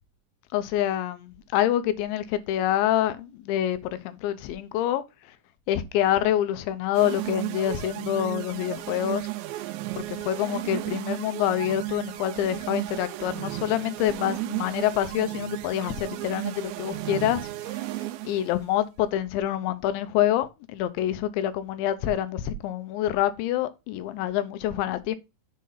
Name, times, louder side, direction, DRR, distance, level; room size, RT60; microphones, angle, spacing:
voice 1, 0.5-5.0 5.7-9.3 10.0-17.5 18.2-25.2, left 11 dB, 90° left, 3.0 m, -26 dB
sound 1, 6.9-18.5, right 17 dB, 85° right, 2.9 m, -34 dB
7.4 x 3.9 x 5.6 m
omnidirectional pair, 5.2 m